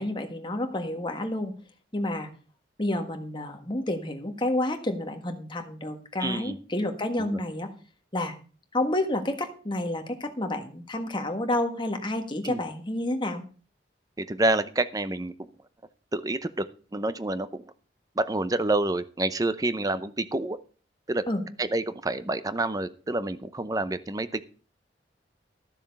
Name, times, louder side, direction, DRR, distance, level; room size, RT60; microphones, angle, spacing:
voice 1, 0.0-1.5 1.9-2.3 2.8-7.7 8.1-8.3 8.7-13.4 21.3-21.4, left 1 dB, 25° left, 5 dB, 1.5 m, -29 dB
voice 2, 6.2-6.6 7.2-7.4 12.4-12.6 14.2-15.3 16.1-16.7 16.9-17.5 18.2-20.6 21.1-21.2 21.6-24.4, right 2 dB, 20° right, 13 dB, 0.6 m, -28 dB
12.5 x 7.2 x 5.3 m, 0.39 s
head